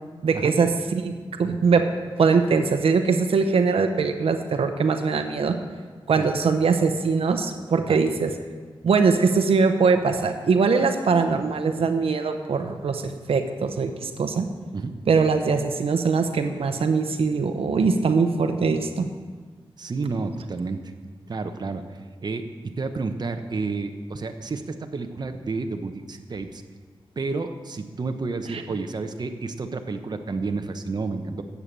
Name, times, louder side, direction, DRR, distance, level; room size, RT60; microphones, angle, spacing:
voice 1, 0.2-1.8 2.2-5.6 6.1-8.3 8.8-14.5 15.1-19.1 28.5-28.6, right 5 dB, 85° right, 6 dB, 0.9 m, -22 dB
voice 2, 19.8-20.8 21.3-21.8 22.2-22.5 22.8-26.6 27.2-31.4, right 3 dB, 45° right, 6 dB, 0.9 m, -30 dB
12.0 x 8.3 x 7.5 m, 1.5 s
wide cardioid pair, 85°, 10 cm